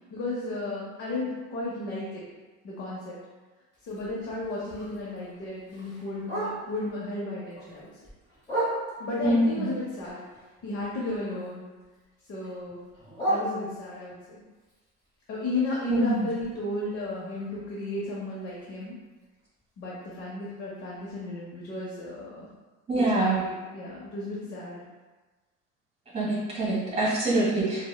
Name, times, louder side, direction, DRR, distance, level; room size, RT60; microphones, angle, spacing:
voice 1, 0.1-2.2 2.6-3.1 3.9-7.9 9.0-10.2 10.6-11.6 12.3-12.8 13.3-14.2 15.3-19.0 19.8-22.5 22.9-24.8, left 2 dB, 50° left, -6 dB, 0.6 m, -34 dB
Bark, 3.7-6.9 7.3-9.2 9.7-11.5 11.8-14.1 14.6-18.5 18.8-18.9 19.2-19.6 20.0-20.1 20.5-20.6 21.1-21.2, right 1 dB, 15° left, 1.0 m, -36 dB
voice 2, 9.2-9.7 15.9-16.3 22.9-23.4 26.1-27.8, right 2 dB, 20° right, -6 dB, 1.2 m, -25 dB
4.0 x 2.1 x 2.3 m, 1.3 s
cardioid pair, 155°, 30 cm